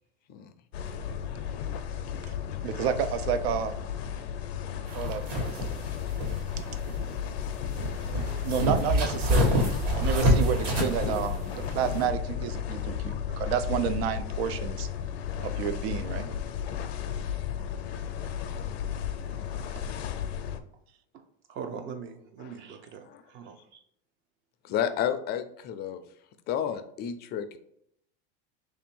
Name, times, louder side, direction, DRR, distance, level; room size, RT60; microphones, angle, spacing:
sound 1, 0.7-20.6, left 9 dB, 90° left, 0.5 m, -34 dB
voice 1, 2.6-3.8 4.9-5.5 8.4-9.5 10.0-14.9 15.4-16.3, right 8 dB, 80° right, 11 dB, 0.5 m, -30 dB
sound 2, 4.9-12.1, equal, 60° right, 1.6 m, -28 dB
voice 2, 6.8-7.1 7.8-8.6 19.7-19.8 21.1-21.2 21.5-23.8, right 6 dB, 40° right, 7 dB, 0.6 m, -43 dB
voice 3, 24.6-26.0 26.5-27.6, left 9 dB, 35° left, 9 dB, 0.4 m, -31 dB
3.3 x 2.6 x 4.4 m, 0.70 s
supercardioid pair, 120°, 31 cm